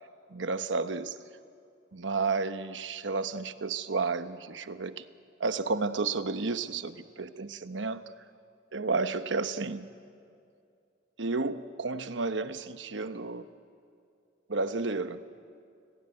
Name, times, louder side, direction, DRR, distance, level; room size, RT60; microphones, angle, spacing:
voice 1, 0.3-1.1 1.9-5.0 5.4-8.0 8.7-9.9 11.2-13.5 14.5-15.2, right 4 dB, 85° right, 10 dB, 1.0 m, -31 dB
29.5 x 17.5 x 9.6 m, 2.4 s
head